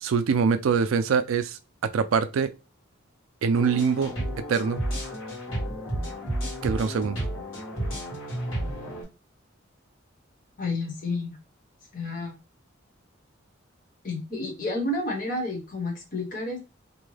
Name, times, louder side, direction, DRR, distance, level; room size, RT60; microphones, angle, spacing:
voice 1, 0.0-2.5 3.4-4.1 4.5-4.8 6.6-7.3, right 6 dB, 80° right, 0.4 m, -24 dB
sound 1, 3.5-9.0, right 1 dB, 80° left, 1.6 m, -32 dB
voice 2, 10.6-11.4 11.9-12.4 14.0-16.6, left 2 dB, 40° left, 1.1 m, -30 dB
2.7 x 2.2 x 3.2 m
head